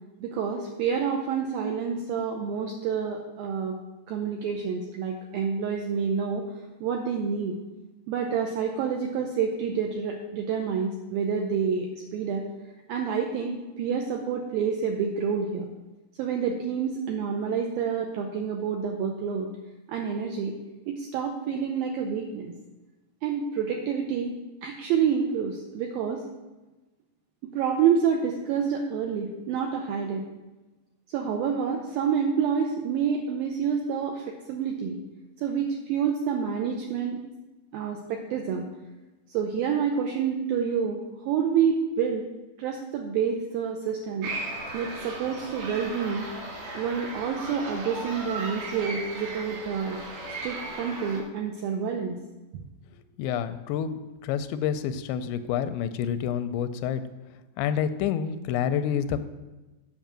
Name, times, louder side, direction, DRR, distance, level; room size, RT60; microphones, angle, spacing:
voice 1, 0.2-3.8 4.1-6.5 6.8-7.6 8.1-12.4 12.9-15.7 16.2-19.5 19.9-20.5 20.9-22.5 23.2-24.3 24.6-26.2 27.4-30.3 31.1-35.0 35.4-37.2 37.7-38.7 39.3-42.2 42.6-44.3 44.7-46.3 46.7-50.0 50.4-52.2, right 7 dB, 85° right, 2 dB, 2.1 m, -28 dB
sound 1, 44.2-51.2, right 2 dB, 55° right, 2.6 m, -36 dB
voice 2, 53.2-57.0 57.6-59.2, left 8 dB, 85° left, 11 dB, 2.8 m, -28 dB
9.1 x 5.5 x 7.4 m, 1.1 s
omnidirectional pair, 5.1 m